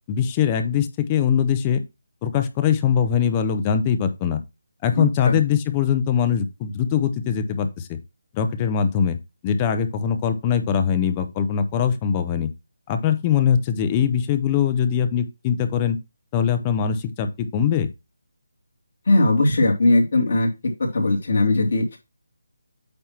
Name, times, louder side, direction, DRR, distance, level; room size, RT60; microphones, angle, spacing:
voice 1, 0.1-1.8 2.2-4.4 4.8-8.0 8.3-9.2 9.4-12.5 12.9-16.0 16.3-17.9, left 8 dB, 20° left, 9 dB, 0.7 m, -22 dB
voice 2, 5.0-5.4 19.1-20.5 20.8-22.0, left 2 dB, 50° left, 0 dB, 2.6 m, -19 dB
8.6 x 3.0 x 5.9 m, 0.24 s
figure-of-eight pair, 165°, 0 cm